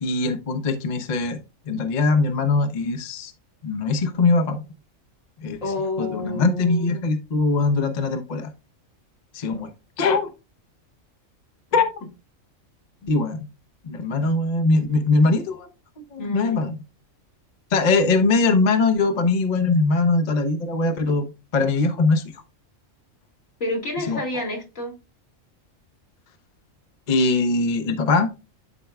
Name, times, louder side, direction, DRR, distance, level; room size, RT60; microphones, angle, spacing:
voice 1, 0.0-1.4 1.7-3.3 3.6-4.6 5.4-5.6 6.0-8.5 9.3-9.7 10.0-10.3 11.7-11.9 13.1-13.5 13.8-15.7 16.1-16.8 17.7-21.3 21.5-22.2 24.1-24.2 27.1-28.3, left 3 dB, 40° left, 0.8 m, -21 dB
voice 2, 5.6-7.0 13.0-13.1 14.9-15.1 16.2-16.6 23.6-24.9, left 2 dB, 75° left, 2.5 m, -29 dB
11.0 x 4.5 x 2.3 m
omnidirectional pair, 1.4 m